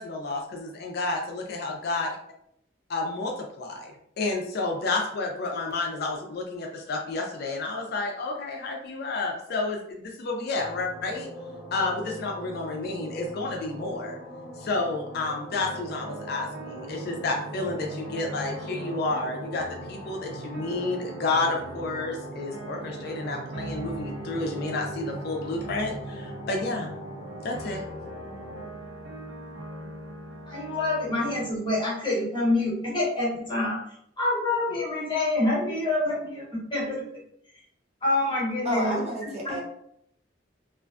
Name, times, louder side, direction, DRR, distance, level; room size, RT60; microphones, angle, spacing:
voice 1, 0.0-2.2 2.9-11.3 11.7-14.2 14.6-27.0 27.4-27.8, left 3 dB, 60° left, 1 dB, 0.4 m, -30 dB
sound 1, 10.5-28.6, equal, 15° right, 1.0 m, -41 dB
sound 2, 15.6-31.5, right 2 dB, 85° right, 0.5 m, -41 dB
voice 2, 30.5-37.1 38.0-39.6, left 2 dB, 25° left, -6 dB, 1.0 m, -27 dB
voice 3, 38.6-39.6, equal, 35° right, -3 dB, 0.6 m, -30 dB
2.4 x 2.2 x 2.3 m, 0.72 s
head